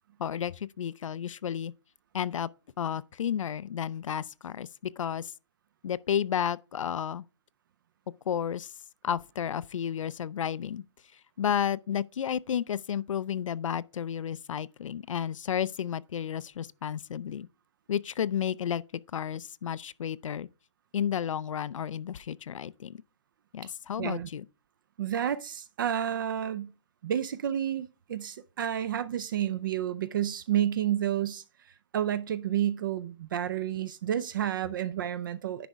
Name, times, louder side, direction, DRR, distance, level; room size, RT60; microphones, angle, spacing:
voice 1, 0.2-1.7 2.1-2.5 2.8-5.3 5.8-7.2 8.3-8.7 9.0-10.8 11.4-17.5 17.9-18.8 19.1-20.5 20.9-23.0 23.5-24.4, left 9 dB, 85° left, 0.5 m, -32 dB
voice 2, 24.0-24.3 25.0-26.7 27.0-31.4 31.9-35.7, right 10 dB, 40° right, 0.4 m, -30 dB
10.0 x 5.2 x 3.5 m
hypercardioid pair, 160°, 16 cm